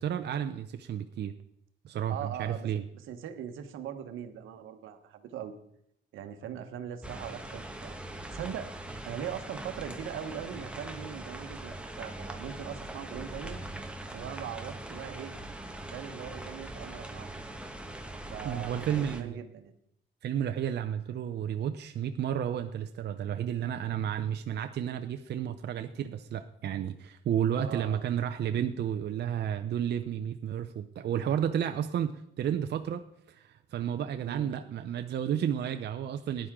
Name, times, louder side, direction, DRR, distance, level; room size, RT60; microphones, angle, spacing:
voice 1, 0.0-1.3 1.8-2.8 18.4-19.4 20.2-33.0 33.3-36.5, right 9 dB, 60° right, 7 dB, 0.6 m, -32 dB
voice 2, 2.1-2.7 2.9-5.6 6.1-8.7 9.0-13.6 14.1-15.3 15.9-17.3 18.3-19.7 27.6-28.0 34.2-34.5, right 9 dB, 85° right, 8 dB, 1.1 m, -40 dB
sound 1, 7.0-19.2, right 1 dB, 5° right, 1.3 m, -41 dB
14.5 x 10.5 x 3.7 m, 0.74 s
cardioid pair, 90°, 20 cm